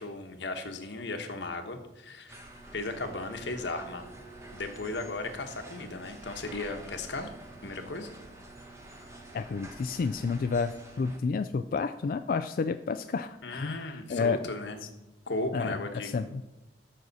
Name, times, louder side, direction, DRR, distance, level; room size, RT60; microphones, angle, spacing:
voice 1, 0.0-2.4 2.7-4.1 4.5-7.3 7.6-8.1 13.4-14.8 15.3-16.1, left 2 dB, 85° left, 6 dB, 1.2 m, -36 dB
sound 1, 2.3-11.2, right 1 dB, 15° right, 1.2 m, -48 dB
voice 2, 9.3-14.4 15.5-16.4, left 5 dB, 50° left, 9 dB, 0.3 m, -30 dB
13.0 x 6.2 x 4.1 m, 1.0 s
head